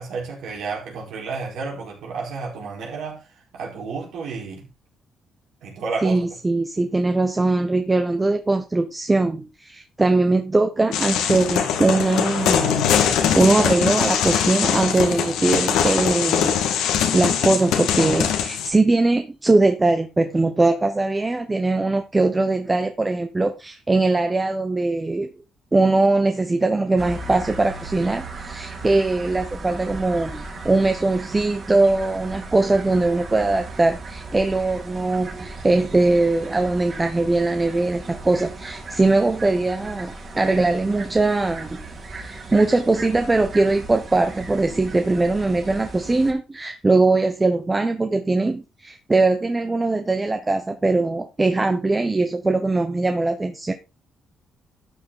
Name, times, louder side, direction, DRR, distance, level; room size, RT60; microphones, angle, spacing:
voice 1, 0.0-3.2 3.5-4.7 5.6-6.2, right 4 dB, 80° right, 4.6 m, -31 dB
voice 2, 6.0-25.3 25.7-41.8 42.1-53.7, right 2 dB, 20° right, 1.0 m, -21 dB
sound 1, 10.9-18.7, left 8 dB, 90° left, 1.8 m, -22 dB
sound 2, 27.0-46.3, right 2 dB, 45° right, 4.0 m, -37 dB
12.0 x 6.7 x 3.9 m
cardioid pair, 90°, 0 cm